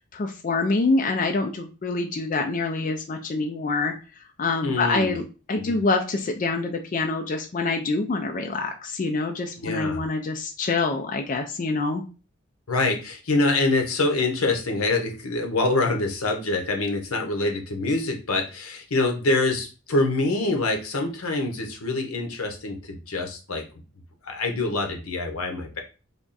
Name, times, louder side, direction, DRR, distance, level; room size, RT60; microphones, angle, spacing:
voice 1, 0.1-3.9 4.4-12.0, left 3 dB, 40° left, 4 dB, 0.3 m, -26 dB
voice 2, 4.6-5.1 5.5-5.8 9.6-10.0 12.7-23.8 24.2-25.8, left 2 dB, 85° left, 4 dB, 0.8 m, -25 dB
3.4 x 2.4 x 4.0 m, 0.33 s
head